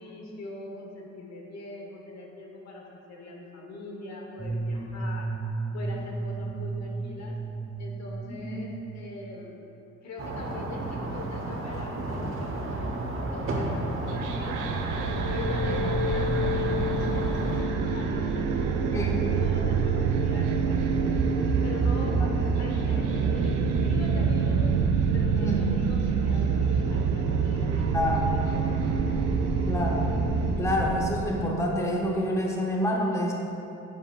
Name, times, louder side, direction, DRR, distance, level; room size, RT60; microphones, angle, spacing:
voice 1, 0.0-5.3 5.7-7.4 7.8-9.6 10.0-14.7 15.3-21.2 21.6-22.2 22.6-24.7 25.1-29.1, left 2 dB, 60° left, 0 dB, 1.2 m, -42 dB
sound 1, 4.4-9.5, right 3 dB, 10° right, 0.3 m, -34 dB
voice 2, 8.3-8.7 18.9-19.3 22.2-22.3 25.3-25.7 27.9-28.3 29.7-30.1 30.6-33.3, left 1 dB, 10° left, -1 dB, 0.8 m, -28 dB
sound 2, 10.2-17.6, right 2 dB, 45° right, 1.0 m, -32 dB
sound 3, 14.0-31.5, right 5 dB, 90° right, 0.6 m, -26 dB
7.5 x 7.4 x 2.3 m, 2.8 s
cardioid pair, 90°, 30 cm